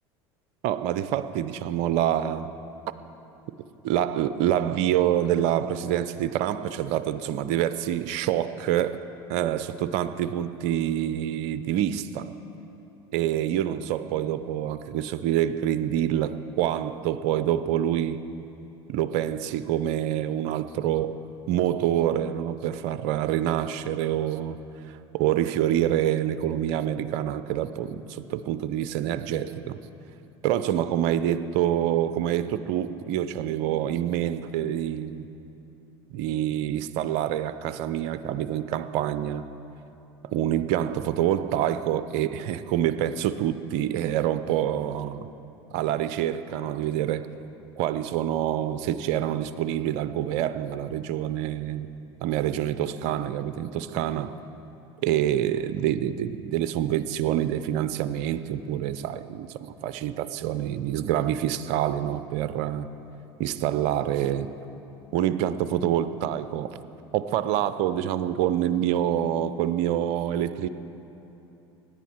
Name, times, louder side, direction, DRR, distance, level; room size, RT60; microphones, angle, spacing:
voice 1, 0.6-2.5 3.8-9.0 9.3-12.3 13.1-18.2 18.9-21.2 21.5-29.8 30.4-35.2 36.1-39.5 40.2-45.3 45.7-47.3 47.8-51.9 52.2-54.3 55.0-62.9 63.4-64.5 65.1-66.8 67.1-70.7, right 11 dB, 60° right, 13 dB, 0.5 m, -26 dB
18.0 x 10.0 x 4.4 m, 2.9 s
hypercardioid pair, 80°, 14 cm